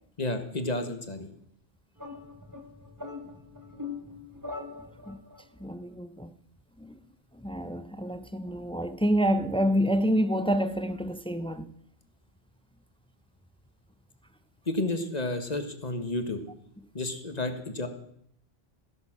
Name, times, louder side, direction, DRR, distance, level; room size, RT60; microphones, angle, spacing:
voice 1, 0.2-1.3 14.7-16.4 16.9-17.9, left 2 dB, 40° left, 1.6 m, -31 dB
sound 1, 2.0-5.4, left 4 dB, 15° right, 1.8 m, -41 dB
voice 2, 5.6-6.3 6.8-7.0 7.3-11.7, equal, 5° left, 0.5 m, -28 dB
15.5 x 11.0 x 6.1 m
omnidirectional pair, 1.1 m